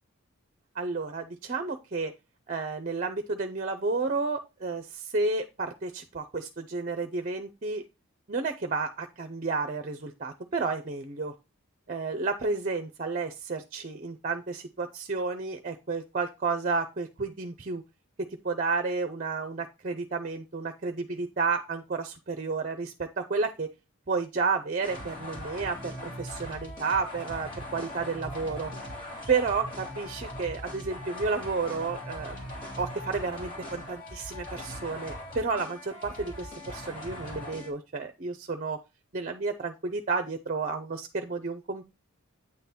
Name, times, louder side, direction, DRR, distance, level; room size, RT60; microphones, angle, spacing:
voice 1, 0.8-2.1 2.5-7.8 8.3-11.3 11.9-17.8 18.4-23.7 24.1-28.7 29.3-32.4 32.8-38.8 39.1-41.8, right 4 dB, 40° right, 8 dB, 0.6 m, -31 dB
sound 1, 24.8-37.7, left 1 dB, 40° left, 2.6 m, -40 dB
8.8 x 3.9 x 4.2 m, 0.26 s
head